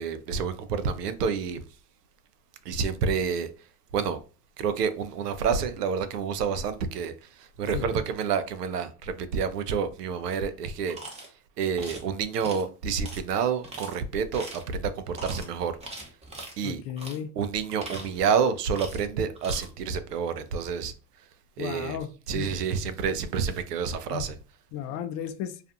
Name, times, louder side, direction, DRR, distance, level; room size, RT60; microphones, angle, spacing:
voice 1, 0.0-1.7 2.6-4.2 4.6-16.1 16.6-16.8 17.4-21.3 21.6-22.0 22.3-24.4, right 6 dB, 90° right, 0.6 m, -29 dB
sound 1, 10.9-11.3 11.8-12.1 12.4-12.6 13.0-13.2 13.6-13.9 14.3-14.7 15.1-15.5 15.8-16.6 17.0-17.2 17.6-18.4 18.7-19.1 19.4-19.7, right 2 dB, 15° right, 0.8 m, -41 dB
voice 2, 16.6-17.3 21.6-22.1 22.3-22.5 24.1-24.2 24.7-25.6, left 10 dB, 40° left, 0.4 m, -34 dB
2.4 x 2.4 x 2.6 m
hypercardioid pair, 95°, 46 cm